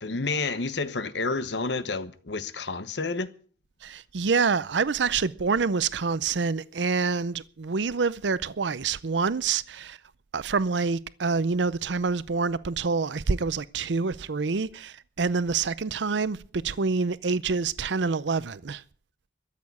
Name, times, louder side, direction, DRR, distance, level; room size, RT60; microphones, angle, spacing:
voice 1, 0.0-3.3, left 3 dB, 75° left, 1.1 m, -30 dB
voice 2, 3.8-10.0 10.3-18.8, right 4 dB, 80° right, 0.6 m, -27 dB
13.5 x 8.6 x 9.5 m
head